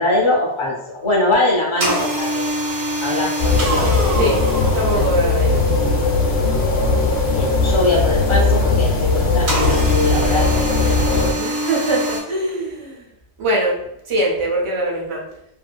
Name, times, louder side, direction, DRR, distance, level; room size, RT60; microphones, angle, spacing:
voice 1, 0.0-2.5 3.0-3.9 7.3-10.5 10.9-11.2, left 2 dB, 30° left, -3 dB, 0.6 m, -22 dB
sound 1, 1.8-5.7 9.5-12.2, right 1 dB, 65° right, 1.0 m, -24 dB
sound 2, 3.4-11.3, left 3 dB, 75° left, 0.9 m, -18 dB
voice 2, 4.7-5.6 11.4-13.0 13.4-13.8 14.1-15.2, right 1 dB, 35° right, -2 dB, 0.5 m, -22 dB
2.7 x 2.6 x 2.3 m, 0.77 s
omnidirectional pair, 1.2 m